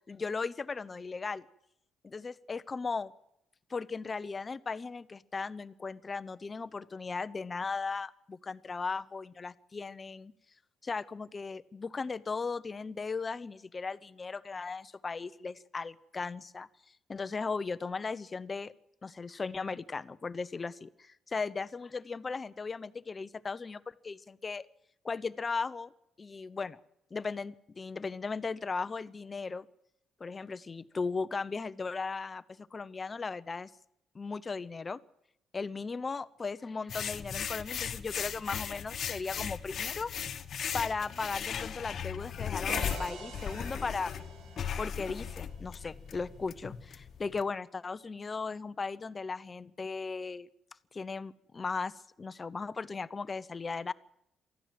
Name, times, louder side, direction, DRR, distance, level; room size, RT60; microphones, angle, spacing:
voice 1, 0.1-1.4 2.0-3.1 3.7-10.3 10.8-16.7 17.1-18.7 19.0-24.6 25.0-25.9 26.2-26.8 27.1-29.7 30.2-33.7 34.1-35.0 35.5-40.1 40.7-44.1 44.8-50.5 50.9-53.9, left 4 dB, 30° left, 15 dB, 0.9 m, -37 dB
sound 1, 36.9-47.4, left 8 dB, 60° left, 1.3 m, -37 dB
sound 2, 42.7-46.5, right 5 dB, 85° right, 2.8 m, -47 dB
23.5 x 14.5 x 7.6 m, 0.79 s
cardioid pair, 90°, 0 cm